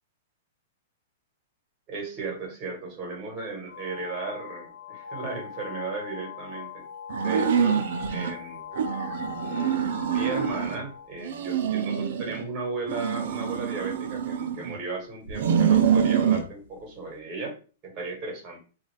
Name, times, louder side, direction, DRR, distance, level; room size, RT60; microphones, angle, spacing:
voice 1, 1.9-6.9 7.2-8.7 9.4-17.6 17.8-18.6, right 4 dB, 25° right, 1 dB, 1.4 m, -35 dB
sound 1, 3.7-11.2, left 7 dB, 85° left, 0.7 m, -40 dB
sound 2, 7.1-8.3 8.7-10.8 11.2-12.4 12.9-14.8 15.3-16.5, right 7 dB, 60° right, 0.5 m, -25 dB
4.0 x 2.5 x 3.2 m, 0.36 s
supercardioid pair, 165°, 0 cm